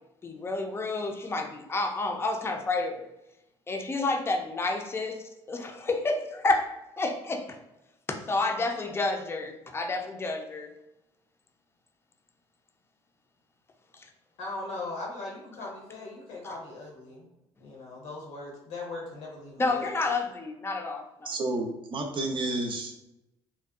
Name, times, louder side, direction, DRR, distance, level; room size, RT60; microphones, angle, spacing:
voice 1, 0.2-3.1 3.7-7.6 8.1-10.7 13.9-14.1 19.6-21.3, left 3 dB, 20° left, 3 dB, 0.4 m, -30 dB
voice 2, 14.4-17.3 17.6-19.9, left 2 dB, 85° left, -1 dB, 0.9 m, -39 dB
voice 3, 21.2-23.0, right 2 dB, 45° right, 2 dB, 0.5 m, -31 dB
2.5 x 2.2 x 2.3 m, 0.90 s
supercardioid pair, 80°, 11 cm